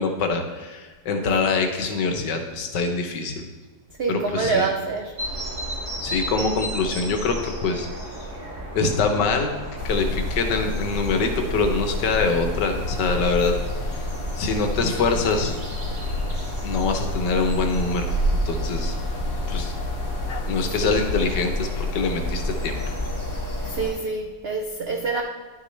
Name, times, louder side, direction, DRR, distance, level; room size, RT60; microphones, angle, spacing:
voice 1, 0.0-3.5 4.1-4.7 6.0-7.9 8.7-9.6 9.8-13.5 13.9-14.0 14.4-15.5 16.6-18.2 18.5-19.0 19.5-19.7 20.5-22.9, left 4 dB, 85° left, 5 dB, 1.5 m, -24 dB
voice 2, 1.2-1.6 4.0-5.1 20.8-21.0 23.6-25.2, right 4 dB, 85° right, 3 dB, 0.5 m, -26 dB
sound 1, 5.2-23.9, right 1 dB, 45° right, 2.1 m, -33 dB
sound 2, 9.8-23.9, left 2 dB, 60° left, 1.1 m, -30 dB
11.0 x 6.1 x 3.2 m, 1.3 s
omnidirectional pair, 1.8 m